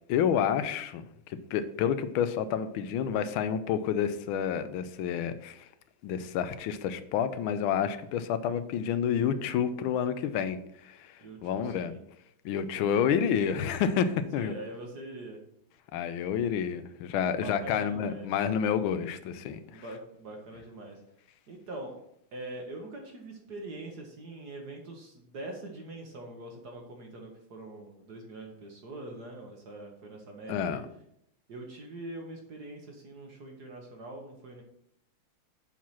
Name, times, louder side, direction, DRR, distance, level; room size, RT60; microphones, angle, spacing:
voice 1, 0.1-5.7 6.0-11.9 12.4-14.5 15.9-19.8 30.5-30.9, left 8 dB, 80° left, 12 dB, 1.4 m, -29 dB
voice 2, 11.2-12.0 14.4-15.4 17.3-18.3 19.7-21.0 21.5-21.9 22.3-30.8 31.5-34.6, right 2 dB, 55° right, 1 dB, 1.6 m, -43 dB
7.5 x 4.7 x 5.6 m, 0.74 s
omnidirectional pair, 2.3 m